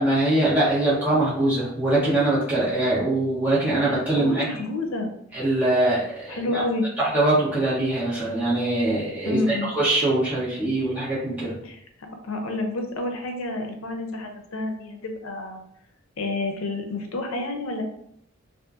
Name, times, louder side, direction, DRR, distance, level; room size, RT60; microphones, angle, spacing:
voice 1, 0.0-4.4 5.3-6.4 7.0-11.5, right 2 dB, 10° right, -10 dB, 1.2 m, -22 dB
voice 2, 3.7-5.1 6.3-6.9 9.3-9.7 11.6-11.8 12.2-15.6 16.2-17.8, left 2 dB, 80° left, 5 dB, 0.5 m, -29 dB
2.7 x 2.4 x 2.4 m, 0.72 s
head